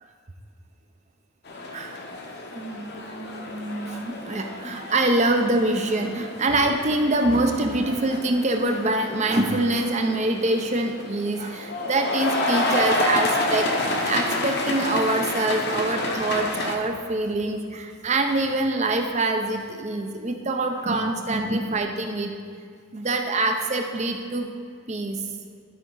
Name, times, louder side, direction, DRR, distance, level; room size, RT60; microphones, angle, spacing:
sound 1, 1.5-16.8, left 2 dB, 50° left, 0.8 m, -29 dB
voice 1, 2.5-22.3 22.9-24.5 24.9-25.2, right 2 dB, 30° right, 4 dB, 0.6 m, -25 dB
12.5 x 4.9 x 3.9 m, 2.2 s
head